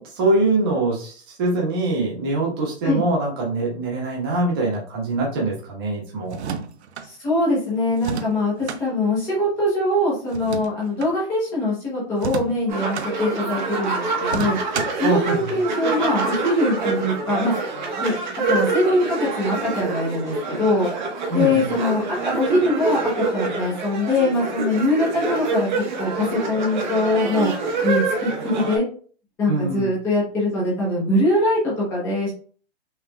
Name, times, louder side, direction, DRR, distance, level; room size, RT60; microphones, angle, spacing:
voice 1, 0.0-6.4 15.0-15.5 21.3-21.6 29.5-29.9, right 2 dB, 20° right, -2 dB, 1.2 m, -23 dB
sound 1, 6.2-7.1 8.0-8.8 10.3-11.1 12.1-13.1 14.2-15.1, right 6 dB, 70° right, 0.7 m, -31 dB
voice 2, 7.0-14.6 15.0-17.5 18.0-18.1 18.5-20.9 21.3-25.7 26.0-27.5 27.8-28.8 29.4-32.3, left 1 dB, 5° left, -7 dB, 0.9 m, -22 dB
sound 2, 12.7-28.8, right 3 dB, 45° right, 1.1 m, -26 dB
5.8 x 3.3 x 2.3 m, 0.42 s
hypercardioid pair, 180°, 34 cm